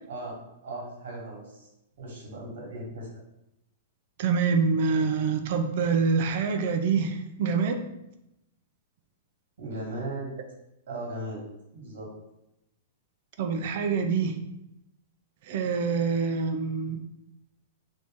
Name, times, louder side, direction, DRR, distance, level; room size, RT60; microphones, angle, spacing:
voice 1, 0.6-1.7 2.0-3.1 9.6-10.3 10.9-11.4 11.7-12.1, right 1 dB, 75° right, -2 dB, 1.4 m, -37 dB
voice 2, 4.2-7.8 13.4-14.4 15.5-17.0, right 5 dB, 55° right, 6 dB, 0.4 m, -26 dB
3.1 x 2.6 x 3.5 m, 0.87 s
hypercardioid pair, 150°, 0 cm